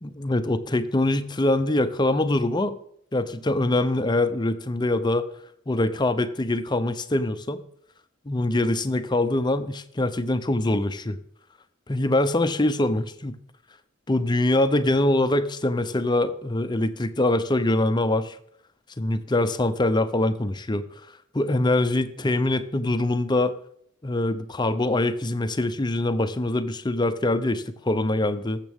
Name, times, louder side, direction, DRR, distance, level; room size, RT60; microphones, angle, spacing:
voice 1, 0.0-2.7 3.1-5.3 5.7-7.6 8.3-11.2 11.9-13.4 14.1-18.4 19.0-20.8 21.3-23.5 24.0-28.6, left 1 dB, 20° left, 10 dB, 0.6 m, -24 dB
20.0 x 7.4 x 3.6 m, 0.68 s
head